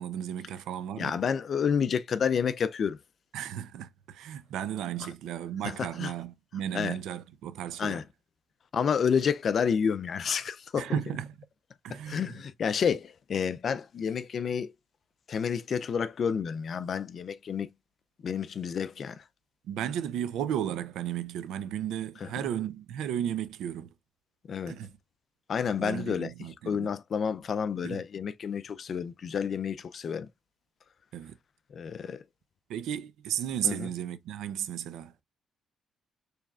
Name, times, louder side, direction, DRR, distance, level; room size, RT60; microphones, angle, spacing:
voice 1, 0.0-1.2 3.3-8.0 10.8-11.4 11.8-12.4 19.6-23.9 24.7-24.9 25.8-26.9 27.8-28.0 31.1-31.4 32.7-35.2, right 10 dB, 85° right, 0.6 m, -34 dB
voice 2, 1.0-3.0 5.8-6.1 6.7-7.0 7.8-8.0 8.7-11.0 11.9-14.7 15.3-17.7 18.2-19.2 22.2-22.3 24.5-24.8 25.5-26.3 26.7-30.3 31.7-32.2 33.6-33.9, left 7 dB, 50° left, 0.4 m, -30 dB
4.7 x 3.3 x 2.4 m
cardioid pair, 90°, 0 cm